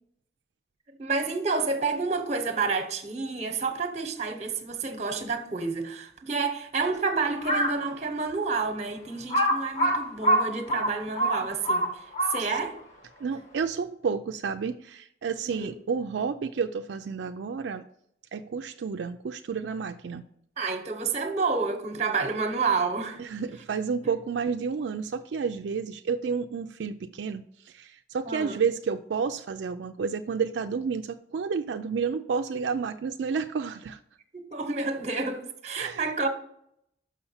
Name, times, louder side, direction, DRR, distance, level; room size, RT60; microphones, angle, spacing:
voice 1, 0.9-12.8 15.4-15.7 20.6-23.2 24.0-24.1 28.2-28.6 34.3-36.3, right 4 dB, 40° right, 1.0 m, -29 dB
Crow, 7.3-7.8 8.4-8.5 9.3-12.7, right 1 dB, 40° left, 1.3 m, -25 dB
voice 2, 13.2-17.8 18.3-20.2 23.2-34.0 35.8-36.1, right 5 dB, 80° right, 0.4 m, -30 dB
6.2 x 5.7 x 5.6 m
head